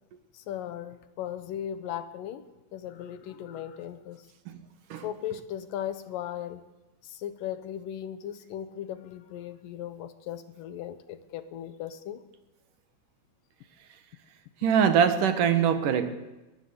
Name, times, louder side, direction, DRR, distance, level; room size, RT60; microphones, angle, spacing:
voice 1, 0.3-2.4 2.7-4.2 5.0-6.6 7.0-12.2, left 10 dB, 85° left, 2.9 m, -37 dB
voice 2, 14.6-16.1, right 7 dB, 75° right, 3.0 m, -23 dB
23.0 x 20.5 x 7.0 m
omnidirectional pair, 3.8 m